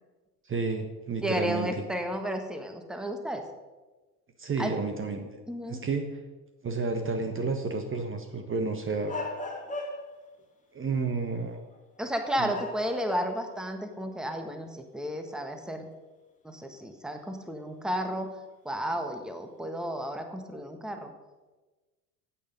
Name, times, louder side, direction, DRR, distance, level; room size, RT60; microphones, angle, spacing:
voice 1, 0.4-1.8 4.4-5.3 5.7-6.2 6.6-9.2 10.7-11.7 12.4-12.5, right 4 dB, 25° right, 6 dB, 1.5 m, -31 dB
voice 2, 1.2-3.4 4.6-4.7 5.5-5.8 12.0-14.7 14.9-15.8 16.4-18.3 18.7-21.1, equal, ahead, 6 dB, 1.6 m, -32 dB
sound 1, 9.1-10.3 11.7-12.0 12.5-13.6 14.0-14.1 16.5-16.6 18.2-18.5, left 2 dB, 15° left, 2.6 m, -37 dB
15.5 x 8.8 x 5.4 m, 1.2 s
figure-of-eight pair, 65°, 49 cm